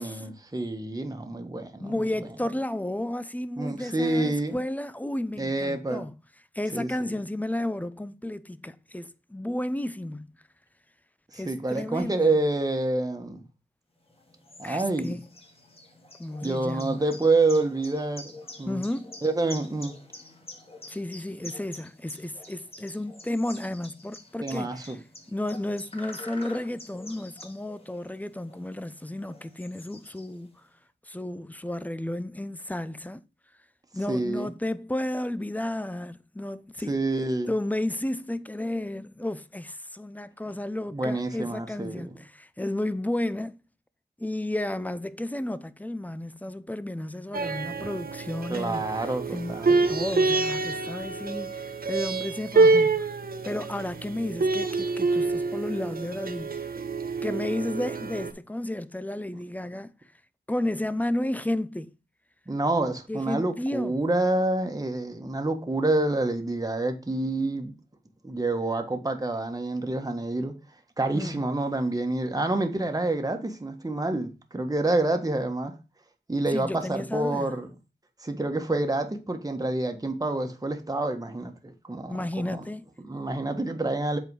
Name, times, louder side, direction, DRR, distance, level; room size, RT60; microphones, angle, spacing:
voice 1, 0.0-2.1 3.6-4.6 5.4-6.1 6.7-7.1 11.3-13.4 14.6-15.2 16.4-18.8 19.2-19.9 24.4-25.0 34.1-34.5 36.9-37.5 40.9-42.1 48.5-49.9 62.5-67.7 68.2-70.5 71.0-75.7 76.3-77.7 78.2-82.6 83.1-84.2, right 2 dB, 20° right, 1.4 m, -28 dB
voice 2, 1.8-6.1 6.5-10.3 11.3-12.4 14.6-15.2 16.2-17.1 18.7-19.2 20.9-24.8 25.3-30.5 31.1-33.2 33.9-37.0 37.5-43.6 44.2-49.1 49.3-53.1 53.4-56.7 57.2-59.9 60.5-61.9 63.1-64.0 71.1-71.4 76.5-77.6 82.1-82.9, left 1 dB, 10° left, 0.6 m, -32 dB
sound 1, 14.1-30.6, left 2 dB, 30° left, 2.0 m, -47 dB
sound 2, 47.3-58.3, right 3 dB, 55° right, 1.1 m, -26 dB
7.8 x 4.4 x 4.7 m
wide cardioid pair, 75°, 18 cm